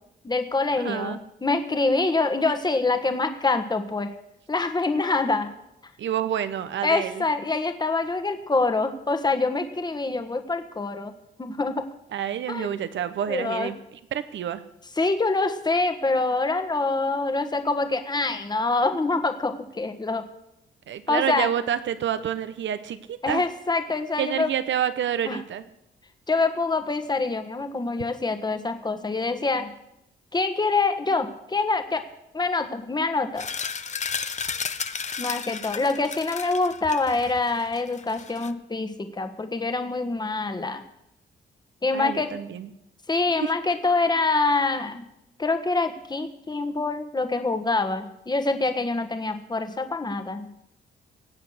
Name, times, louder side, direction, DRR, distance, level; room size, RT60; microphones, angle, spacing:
voice 1, 0.2-4.1 4.5-5.5 6.8-11.1 11.4-11.8 12.5-12.8 13.3-13.7 15.0-20.2 21.1-21.5 23.2-24.5 25.3-25.4 26.3-29.7 30.3-32.0 32.3-33.5 35.2-40.8 41.8-42.3 43.1-45.0 45.4-50.5, left 3 dB, 20° left, 8 dB, 1.4 m, -25 dB
voice 2, 0.8-1.2 6.0-7.3 12.1-13.8 14.1-14.6 20.9-23.4 24.2-25.6 41.9-42.7 43.4-43.5, right 9 dB, 75° right, 13 dB, 1.0 m, -28 dB
sound 1, 33.4-38.5, left 6 dB, 35° left, 0.7 m, -33 dB
18.0 x 7.9 x 6.6 m, 0.82 s
cardioid pair, 85°, 19 cm